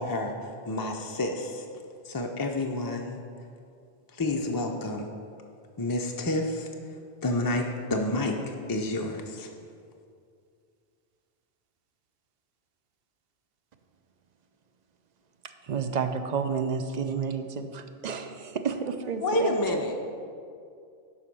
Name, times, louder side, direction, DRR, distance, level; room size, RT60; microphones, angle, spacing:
voice 1, 0.0-1.6 2.0-3.2 4.1-5.1 5.8-6.7 7.2-9.5 19.2-19.9, left 2 dB, 30° left, 2 dB, 0.4 m, -29 dB
voice 2, 15.7-19.5, right 6 dB, 50° right, 8 dB, 0.6 m, -30 dB
voice 3, 18.7-19.8, right 5 dB, 70° right, 7 dB, 0.9 m, -47 dB
11.0 x 4.2 x 6.1 m, 2.4 s
omnidirectional pair, 1.0 m